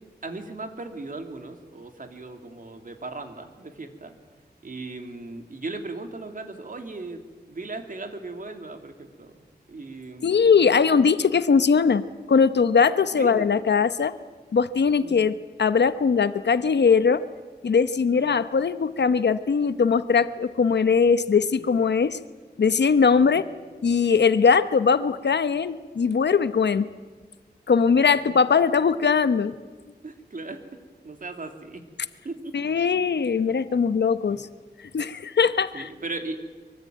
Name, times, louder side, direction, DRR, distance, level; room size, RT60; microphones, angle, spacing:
voice 1, 0.2-4.1 4.6-7.2 7.5-9.3 9.7-10.5 13.2-13.5 15.0-15.1 18.2-18.3 21.5-21.7 23.2-23.4 28.3-28.4 30.0-30.6 31.0-31.8 32.2-32.5 34.3-34.4 35.7-36.4, right 3 dB, 50° right, 6 dB, 2.9 m, -37 dB
voice 2, 10.2-12.0 12.3-14.1 14.5-17.2 17.6-22.2 22.6-23.4 23.8-26.9 27.7-29.5 32.5-34.5 34.9-35.9, left 5 dB, 80° left, 13 dB, 1.0 m, -20 dB
23.5 x 23.5 x 9.2 m, 1.4 s
wide cardioid pair, 95°, 18 cm